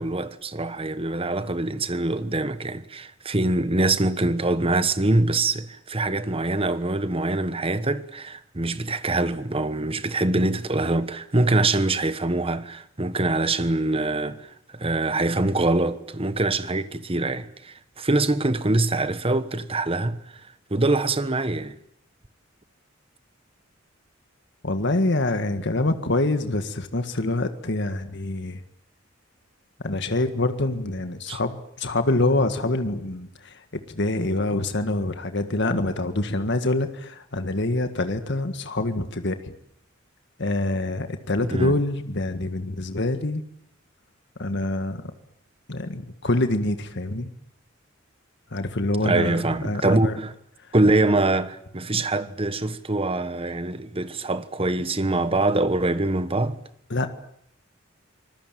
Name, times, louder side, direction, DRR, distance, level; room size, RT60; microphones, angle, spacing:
voice 1, 0.0-20.2 20.7-21.8 31.3-31.4 41.5-41.8 49.0-50.3 50.7-56.6, right 2 dB, 30° right, 1.3 m, -24 dB
voice 2, 24.6-28.6 29.8-33.6 33.9-39.5 40.4-43.4 44.4-45.0 45.7-47.3 48.5-50.2 51.9-52.0 56.9-57.1, left 2 dB, 60° left, 1.8 m, -25 dB
25.5 x 20.5 x 9.2 m
head